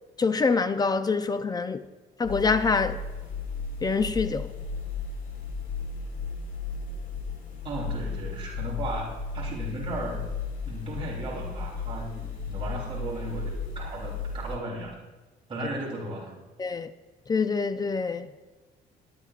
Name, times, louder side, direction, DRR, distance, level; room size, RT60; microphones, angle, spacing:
voice 1, 0.2-1.9 2.2-3.0 3.8-4.5 16.6-16.9 17.3-18.3, left 4 dB, 25° left, 0.5 m, -25 dB
sound 1, 2.2-14.6, left 4 dB, 60° left, 4.1 m, -34 dB
voice 2, 7.6-10.3 10.7-15.0 15.5-16.4, right 1 dB, 30° right, 3.3 m, -36 dB
20.5 x 9.5 x 2.5 m
cardioid pair, 110°, 17 cm